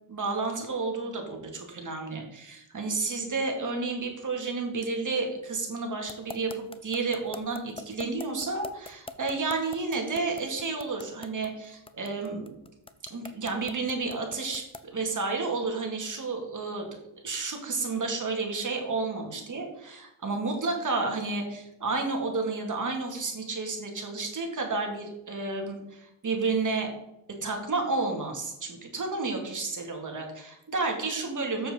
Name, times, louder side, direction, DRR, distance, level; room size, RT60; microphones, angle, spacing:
voice 1, 0.1-12.5 13.1-14.6 14.9-16.9 17.2-26.9 27.4-31.7, right 3 dB, 35° right, 2 dB, 2.4 m, -31 dB
sound 1, 6.1-14.9, left 3 dB, 10° left, 0.5 m, -42 dB
7.7 x 6.7 x 3.9 m, 0.87 s
cardioid pair, 75°, 50 cm